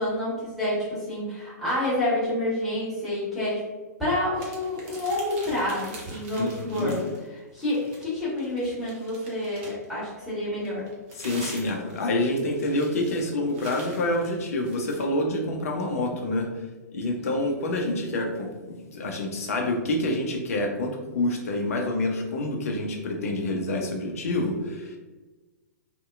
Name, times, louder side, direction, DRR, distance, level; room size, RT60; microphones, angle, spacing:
voice 1, 0.0-3.6 4.0-7.0 7.5-10.9, left 1 dB, ahead, -10 dB, 1.3 m, -28 dB
sound 1, 4.3-7.3 7.6-9.9 10.6-15.0, right 2 dB, 35° right, 0.6 m, -45 dB
voice 2, 6.4-7.0 11.2-16.5 16.9-25.0, left 1 dB, 55° left, 2 dB, 0.5 m, -27 dB
2.7 x 2.1 x 2.3 m, 1.2 s
figure-of-eight pair, 110°, 9 cm